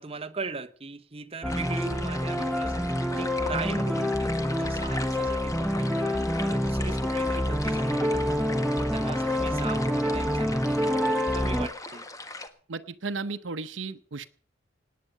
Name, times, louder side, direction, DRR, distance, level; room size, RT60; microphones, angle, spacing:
voice 1, 0.0-8.4 8.9-12.0, right 3 dB, 30° right, 1.0 m, -39 dB
sound 1, 1.4-11.7, equal, ahead, 0.8 m, -27 dB
sound 2, 1.5-12.5, left 2 dB, 20° left, 1.5 m, -39 dB
voice 2, 12.7-14.3, right 4 dB, 85° right, 0.8 m, -34 dB
18.5 x 9.4 x 6.6 m
head